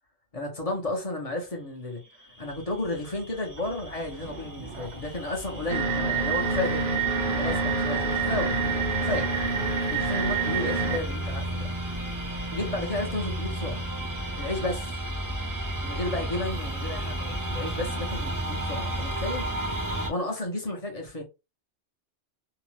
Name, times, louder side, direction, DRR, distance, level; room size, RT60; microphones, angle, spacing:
voice 1, 0.3-2.0 2.4-6.9 7.4-9.3 9.9-11.7 12.5-13.8 14.4-15.0 15.8-19.6 20.1-21.2, left 2 dB, 40° left, 0.7 m, -33 dB
sound 1, 2.3-20.1, right 1 dB, 25° right, 0.5 m, -33 dB
sound 2, 3.5-8.8, right 5 dB, 80° right, 1.2 m, -45 dB
sound 3, 5.7-11.0, right 4 dB, 55° right, 0.8 m, -27 dB
2.8 x 2.1 x 3.1 m
omnidirectional pair, 1.1 m